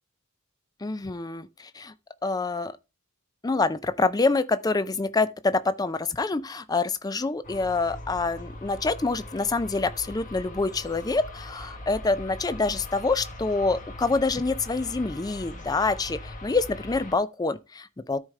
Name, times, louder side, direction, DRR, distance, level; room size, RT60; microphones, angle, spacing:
voice 1, 0.8-1.9 2.2-2.7 3.4-18.2, left 3 dB, 15° left, 0.4 m, -26 dB
sound 1, 7.4-17.2, left 1 dB, 35° left, 1.2 m, -41 dB
13.0 x 4.9 x 3.2 m
head